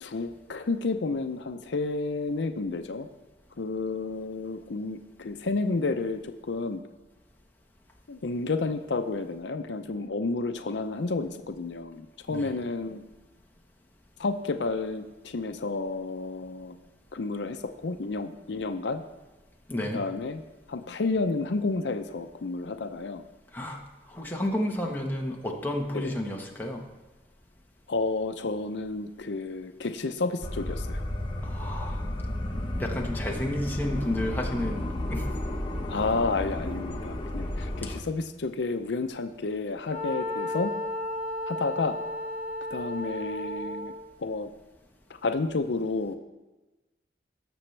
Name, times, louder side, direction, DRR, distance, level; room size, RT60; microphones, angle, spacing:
voice 1, 0.0-3.1 3.6-6.8 8.1-13.0 14.2-16.8 17.1-19.0 19.9-20.4 20.7-23.2 25.9-26.1 27.9-31.0 35.9-40.7 41.5-42.0 42.7-43.9 44.2-44.5 45.1-46.1, left 3 dB, 85° left, 8 dB, 0.6 m, -31 dB
voice 2, 19.7-20.0 23.5-23.8 24.1-26.8 31.4-32.0 32.5-35.3, left 1 dB, 10° left, 0 dB, 1.2 m, -31 dB
sound 1, 30.4-38.0, left 1 dB, 25° left, 0.9 m, -32 dB
Wind instrument woodwind instrument, 39.9-44.0, left 1 dB, 80° right, 3.5 m, -33 dB
18.0 x 7.0 x 3.3 m, 1.1 s
head